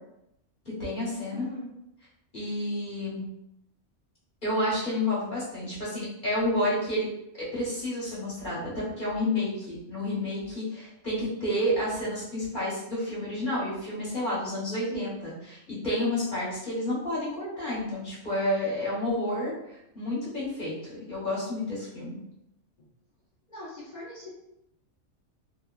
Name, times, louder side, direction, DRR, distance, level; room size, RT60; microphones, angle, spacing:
voice 1, 0.8-1.5 2.3-3.2 4.4-7.1 7.3-19.5 19.9-22.2, left 1 dB, 40° left, -9 dB, 1.3 m, -30 dB
voice 2, 1.3-1.7 14.8-15.1 23.5-24.3, equal, 60° left, -6 dB, 0.4 m, -40 dB
2.9 x 2.2 x 2.3 m, 0.83 s
omnidirectional pair, 1.3 m